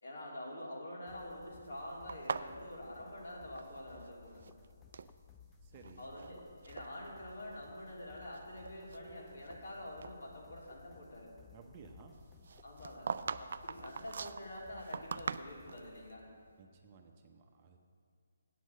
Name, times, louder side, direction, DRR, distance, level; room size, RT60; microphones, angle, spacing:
voice 1, 0.0-4.4 6.0-11.3 12.6-13.1 13.4-16.2, left 1 dB, 75° left, -4 dB, 3.0 m, -47 dB
sound 1, 1.1-16.5, left 6 dB, 10° left, 0.5 m, -60 dB
sound 2, 2.1-4.1 4.3-5.1 5.8-6.3 6.6-6.9 7.5-7.6 8.2-9.7 10.0-10.2 12.4-15.9, right 5 dB, 60° right, 0.3 m, -42 dB
voice 2, 5.6-6.1 11.5-12.2 16.6-17.8, right 4 dB, 30° right, 3 dB, 0.8 m, -56 dB
8.3 x 6.3 x 7.5 m, 2.2 s
hypercardioid pair, 155°, 0 cm